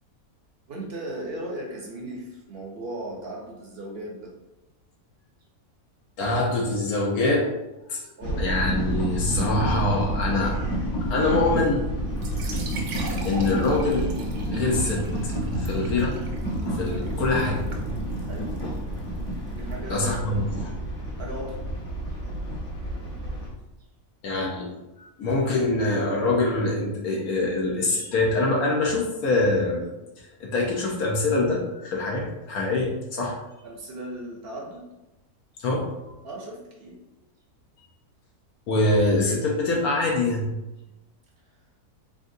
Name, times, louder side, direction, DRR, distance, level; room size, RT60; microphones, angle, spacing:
voice 1, 0.7-4.3 8.2-8.5 16.9-17.1 18.3-18.5 19.5-20.1 21.2-21.6 33.6-34.9 36.2-37.0, right 1 dB, 50° right, -1 dB, 0.8 m, -36 dB
voice 2, 6.2-7.5 7.9-8.0 8.4-10.6 11.1-11.8 12.5-12.6 13.2-14.1 14.5-16.2 16.6-17.6 19.9-20.7 24.2-24.7 25.0-29.9 30.2-33.4 35.6-36.1 38.7-40.5, left 2 dB, 75° left, -1 dB, 1.2 m, -24 dB
sound 1, 8.2-23.5, right 1 dB, 55° left, 1.5 m, -29 dB
sound 2, 12.1-19.7, right 3 dB, 75° right, 1.2 m, -41 dB
3.7 x 3.6 x 2.6 m, 0.99 s
omnidirectional pair, 1.6 m